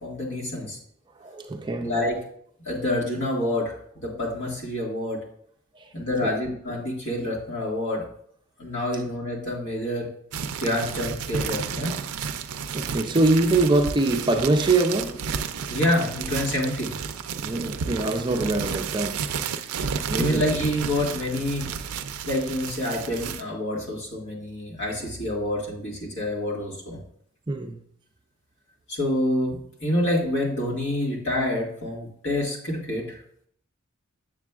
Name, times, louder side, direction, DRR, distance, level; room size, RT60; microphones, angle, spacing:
voice 1, 0.0-0.8 1.8-2.2 2.7-3.8 4.0-5.2 5.9-8.1 8.6-10.1 10.6-11.9 15.7-17.0 20.1-21.7 22.2-27.0 28.9-33.2, left 1 dB, 55° left, 1.9 m, -27 dB
voice 2, 1.2-1.9 5.7-5.9 6.2-6.3 12.7-15.2 17.4-19.2 20.1-20.4 27.5-27.8, right 2 dB, 20° right, 0.5 m, -23 dB
sound 1, 10.3-23.4, right 6 dB, 85° right, 0.4 m, -32 dB
7.4 x 7.2 x 2.4 m
head